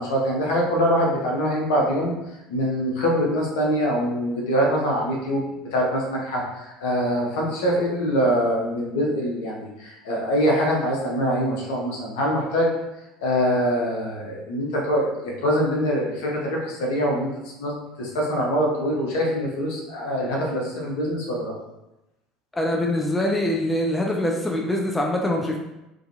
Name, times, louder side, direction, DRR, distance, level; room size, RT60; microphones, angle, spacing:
voice 1, 0.0-2.1 2.5-5.4 5.7-12.7 13.2-17.3 17.6-17.7 18.0-21.5, equal, 65° left, -2 dB, 0.6 m, -24 dB
voice 2, 22.5-25.6, left 1 dB, 10° left, 0 dB, 0.3 m, -24 dB
2.4 x 2.2 x 2.7 m, 0.95 s
figure-of-eight pair, 65°, 0 cm